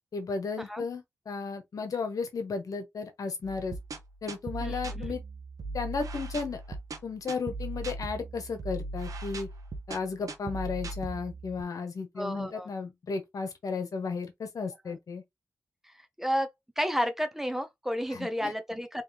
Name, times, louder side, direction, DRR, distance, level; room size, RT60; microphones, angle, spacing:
voice 1, 0.0-3.8 4.2-5.2 5.7-6.6 7.0-9.5 9.9-15.2 18.1-18.5, left 4 dB, 75° left, 1.1 m, -34 dB
sound 1, 3.4-11.6, right 2 dB, 70° right, 1.0 m, -38 dB
voice 2, 4.6-5.0 12.2-12.7 14.9-15.0 15.8-16.5 16.8-19.0, equal, 5° right, 0.8 m, -32 dB
3.6 x 3.2 x 3.0 m
cardioid pair, 45°, 6 cm